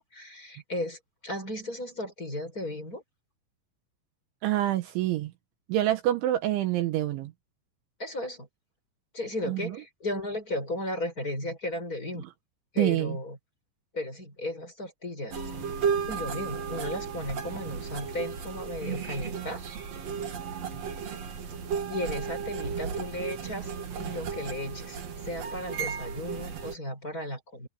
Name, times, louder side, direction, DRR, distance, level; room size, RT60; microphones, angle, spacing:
voice 1, 0.0-3.0 8.0-8.5 9.1-12.2 12.7-13.4 13.9-15.4 16.1-19.6 21.9-23.7 24.0-27.7, left 1 dB, 15° left, 6.1 m, -35 dB
voice 2, 4.4-5.3 5.7-7.3 9.5-9.7 12.8-13.2, right 13 dB, 75° right, 3.4 m, -26 dB
sound 1, 15.3-26.8, right 6 dB, 50° right, 2.1 m, -34 dB
omnidirectional pair, 5.8 m